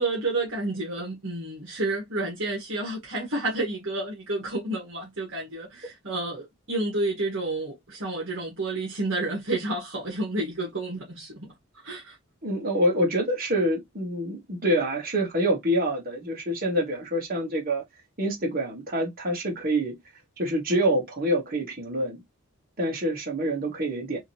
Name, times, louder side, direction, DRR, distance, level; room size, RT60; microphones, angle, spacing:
voice 1, 0.0-11.5 11.8-12.1, right 2 dB, 60° right, 1.6 m, -30 dB
voice 2, 12.4-17.8 18.2-20.0 20.4-22.2 22.8-24.2, equal, 40° right, 1.4 m, -26 dB
3.7 x 2.8 x 2.8 m
head